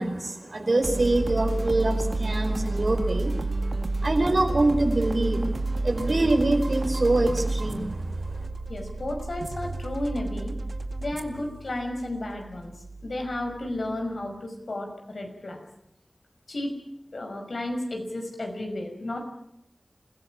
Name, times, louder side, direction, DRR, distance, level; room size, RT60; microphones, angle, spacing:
voice 1, 0.0-3.4 4.0-8.4, right 2 dB, 60° right, 4 dB, 4.9 m, -25 dB
sound 1, 0.8-14.2, right 2 dB, 75° right, 2.0 m, -30 dB
voice 2, 8.7-10.5 11.0-12.7 13.0-15.6 16.5-16.7 17.1-19.2, left 1 dB, 75° left, 3 dB, 5.8 m, -32 dB
27.5 x 16.5 x 8.9 m, 0.78 s
wide cardioid pair, 50°, 0 cm